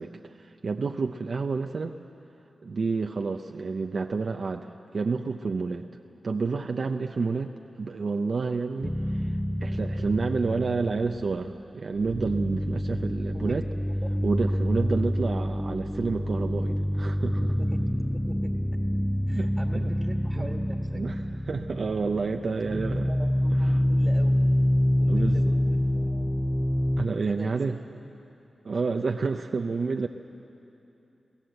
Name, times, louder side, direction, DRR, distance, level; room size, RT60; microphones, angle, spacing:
voice 1, 0.0-1.9 2.6-5.9 6.2-7.5 7.8-13.6 14.2-17.5 19.3-19.5 19.7-19.9 20.4-20.6 20.9-21.2 21.5-23.1 25.1-25.5 27.0-27.8 28.6-30.1, right 4 dB, 60° right, 4 dB, 0.6 m, -29 dB
sound 1, 8.8-11.6 11.9-27.0, equal, 5° left, 0.6 m, -27 dB
voice 2, 19.3-21.0 22.4-24.4 24.9-26.5 27.2-28.1 28.7-28.8, right 1 dB, 30° right, 2 dB, 1.6 m, -43 dB
22.5 x 16.0 x 7.9 m, 2.8 s
cardioid pair, 65°, 0 cm